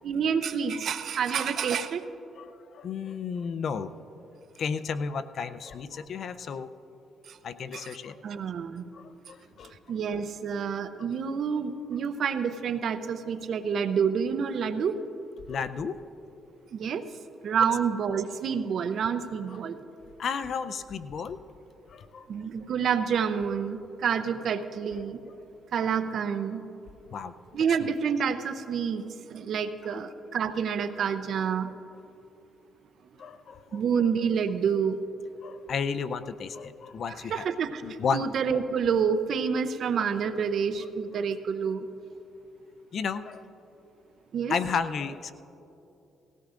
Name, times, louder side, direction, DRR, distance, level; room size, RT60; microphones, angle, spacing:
voice 1, 0.0-2.0 7.3-7.4 7.7-7.9 8.2-8.9 9.9-15.0 16.7-17.1 17.4-19.8 22.3-25.2 25.7-26.7 27.5-31.7 33.7-35.0 37.3-41.9 44.3-44.5, right 6 dB, 65° right, 10 dB, 0.7 m, -28 dB
voice 2, 2.3-3.9 4.6-6.7 7.4-8.4 8.9-9.7 15.5-16.0 19.5-19.6 20.2-21.4 21.9-22.3 25.3-25.4 27.1-27.3 27.8-27.9 29.9-30.0 33.2-34.0 35.4-37.5 37.8-38.3 41.1-41.2 42.9-43.5 44.5-45.3, left 6 dB, 60° left, 12 dB, 0.5 m, -33 dB
19.0 x 16.5 x 2.5 m, 2.9 s
cardioid pair, 90°, 0 cm